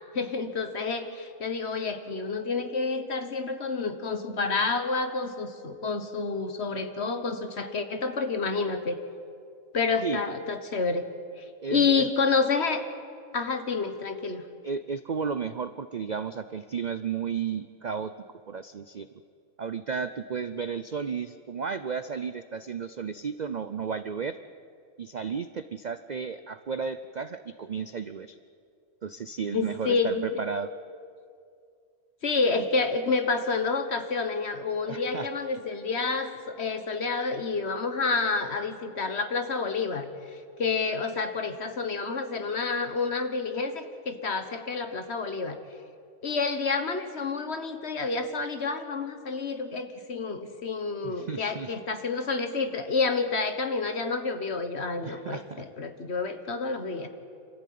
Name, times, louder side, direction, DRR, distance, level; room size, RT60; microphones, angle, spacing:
voice 1, 0.1-9.0 9.7-11.0 11.4-11.5 11.7-12.9 13.3-14.4 29.5-30.3 32.2-45.6 46.2-57.1, left 4 dB, 50° left, 8 dB, 1.7 m, -29 dB
voice 2, 11.6-12.1 14.6-18.1 18.5-19.1 19.6-24.4 25.0-28.4 29.0-30.7 34.9-35.3 51.0-51.7 55.0-55.6, right 6 dB, 50° right, 11 dB, 0.5 m, -33 dB
27.0 x 14.5 x 9.3 m, 2.3 s
omnidirectional pair, 1.5 m